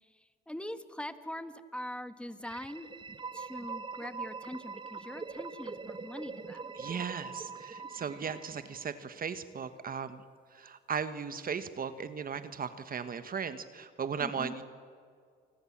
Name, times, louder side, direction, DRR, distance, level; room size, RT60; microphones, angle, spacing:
voice 1, 0.0-2.9 3.3-6.7 14.2-14.5, left 1 dB, 5° left, 11 dB, 1.5 m, -42 dB
sound 1, 2.4-9.2, right 4 dB, 25° right, 1.0 m, -43 dB
voice 2, 6.8-10.2 10.5-14.6, right 6 dB, 45° right, 11 dB, 1.4 m, -37 dB
28.5 x 20.5 x 7.5 m, 2.1 s
cardioid pair, 90°, 20 cm